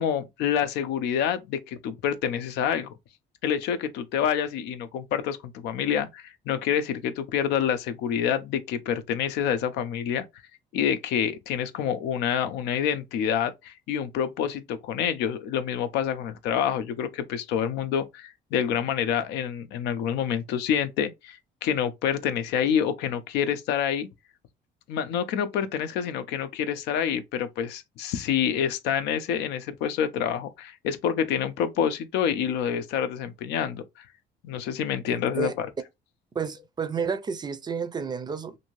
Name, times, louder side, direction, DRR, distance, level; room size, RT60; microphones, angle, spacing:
voice 1, 0.0-2.9 3.4-10.2 10.7-24.1 24.9-33.8 34.4-35.7, left 8 dB, 85° left, 0.5 m, -27 dB
voice 2, 35.1-35.5 36.3-38.6, right 5 dB, 25° right, 0.4 m, -31 dB
2.6 x 2.6 x 3.0 m
cardioid pair, 110°, 17 cm